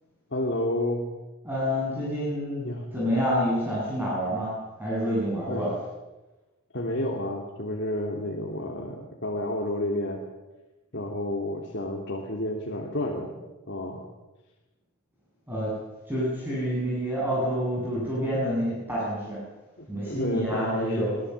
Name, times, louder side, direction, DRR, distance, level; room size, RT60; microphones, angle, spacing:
voice 1, 0.3-1.0 2.6-2.8 5.5-5.7 6.7-10.2 10.9-13.4 13.7-14.1 19.8-21.1, left 1 dB, 55° left, 0 dB, 2.7 m, -30 dB
voice 2, 1.4-2.7 2.9-4.5 4.8-5.7 15.5-15.7 16.1-19.4 19.9-21.2, equal, 10° right, -7 dB, 7.5 m, -28 dB
23.5 x 19.0 x 8.1 m, 1.1 s
head